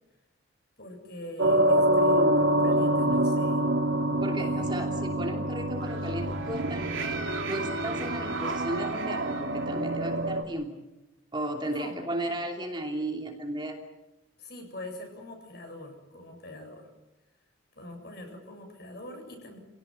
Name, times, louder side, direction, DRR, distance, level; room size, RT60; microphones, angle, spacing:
voice 1, 0.8-3.6 4.4-4.9 11.6-12.0 14.4-16.8 17.8-19.6, left 1 dB, 50° left, 4 dB, 7.9 m, -43 dB
sound 1, 1.4-10.4, right 1 dB, 75° right, 3.3 m, -26 dB
voice 2, 4.2-7.2 7.5-10.7 11.3-13.8, right 1 dB, 25° right, 2 dB, 3.0 m, -34 dB
28.5 x 17.5 x 9.6 m, 0.96 s
head